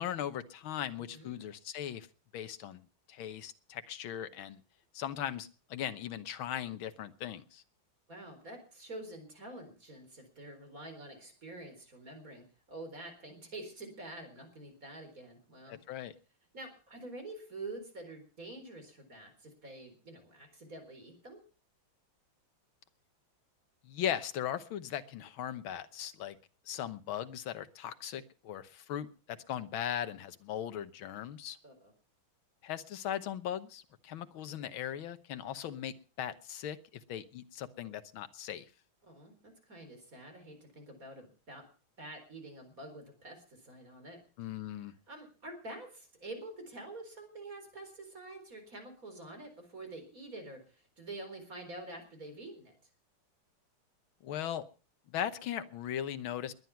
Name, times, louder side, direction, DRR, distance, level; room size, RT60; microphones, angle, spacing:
voice 1, 0.0-2.1 2.3-4.6 4.9-7.6 15.7-16.1 23.8-26.4 26.7-31.6 32.6-38.7 44.4-44.9 54.2-54.6 55.1-56.5, left 10 dB, 80° left, 11 dB, 1.8 m, -38 dB
voice 2, 0.9-1.4 8.1-15.8 16.5-21.4 31.6-31.9 39.0-41.7 42.0-44.2 45.1-52.7, right 2 dB, 40° right, 5 dB, 4.6 m, -47 dB
21.0 x 9.6 x 5.8 m, 0.39 s
omnidirectional pair, 2.2 m